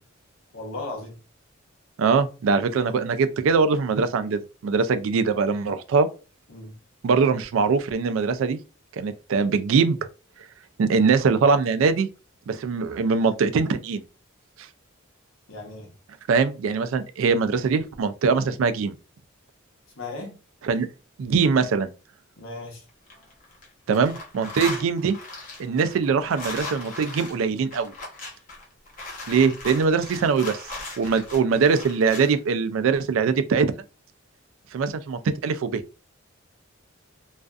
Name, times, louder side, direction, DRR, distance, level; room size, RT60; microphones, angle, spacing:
voice 1, 0.5-1.2 6.5-6.7 15.5-15.9 20.0-20.4 22.4-22.8, left 2 dB, 85° left, 0.9 m, -36 dB
voice 2, 2.0-6.1 7.0-8.6 8.9-10.0 10.8-12.1 12.5-14.0 16.3-18.9 20.6-20.9 21.2-21.9 23.9-25.2 25.6-27.9 29.3-30.6 31.0-33.7 34.7-35.8, right 5 dB, 75° right, 0.3 m, -22 dB
sound 1, 22.9-23.7 23.9-32.4, left 2 dB, 40° left, 0.8 m, -37 dB
2.4 x 2.4 x 2.3 m
head